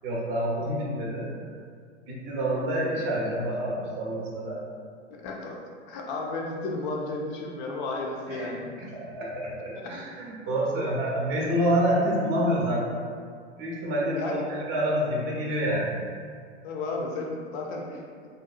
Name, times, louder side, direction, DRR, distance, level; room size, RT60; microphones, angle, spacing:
voice 1, 0.0-1.3 2.0-4.6 8.3-8.5 8.8-12.8 13.6-16.0, equal, 30° right, -3 dB, 0.6 m, -27 dB
voice 2, 5.1-8.6 9.7-10.0 14.2-14.5 16.6-18.4, left 2 dB, 40° left, 0 dB, 0.4 m, -33 dB
2.7 x 2.1 x 2.3 m, 2.1 s
figure-of-eight pair, 95°, 37 cm